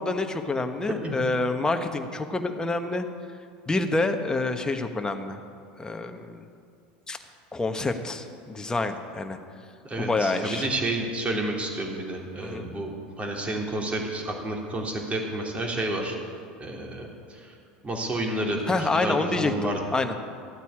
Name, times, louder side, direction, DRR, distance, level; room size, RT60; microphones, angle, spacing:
voice 1, 0.0-3.1 3.7-5.4 5.8-6.4 7.1-7.2 7.5-9.4 10.0-10.7 12.4-12.7 18.7-20.2, left 3 dB, 15° left, 6 dB, 1.3 m, -27 dB
voice 2, 9.8-16.2 16.6-17.5 17.8-19.8, right 1 dB, 25° right, 0 dB, 3.3 m, -30 dB
14.0 x 9.0 x 8.8 m, 2.3 s
hypercardioid pair, 90°, 5 cm